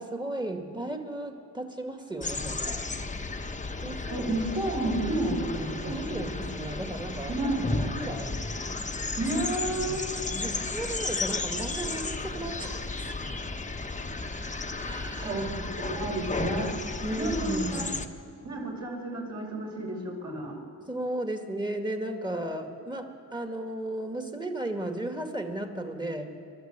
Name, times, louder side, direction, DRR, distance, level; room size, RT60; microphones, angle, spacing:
voice 1, 0.0-2.8 3.8-4.3 5.9-7.3 7.8-8.4 9.8-9.9 10.3-13.4 14.8-15.3 17.0-17.9 20.9-26.3, right 1 dB, 10° right, 5 dB, 2.1 m, -35 dB
sound 1, 2.2-18.1, left 3 dB, 20° left, 1.2 m, -33 dB
voice 2, 4.1-6.2 7.3-7.8 9.2-10.0 15.1-16.8 17.1-17.9 18.4-20.6, right 2 dB, 45° right, -2 dB, 5.0 m, -31 dB
28.0 x 13.0 x 8.1 m, 2.4 s
cardioid pair, 95°, 36 cm